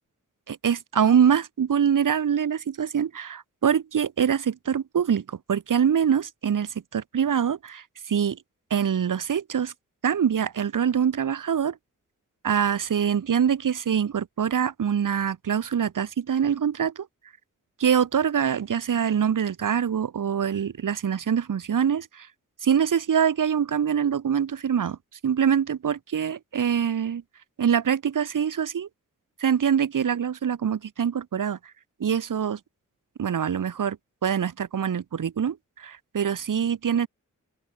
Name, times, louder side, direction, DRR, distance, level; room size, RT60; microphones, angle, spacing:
voice 1, 0.5-8.4 8.7-9.7 10.0-11.8 12.4-17.1 17.8-22.3 22.6-25.0 25.2-27.2 27.6-28.9 29.4-31.6 32.0-32.6 33.2-34.0 34.2-37.1, right 8 dB, 80° right, 1.6 m, -24 dB
open air
wide cardioid pair, 95°, 31 cm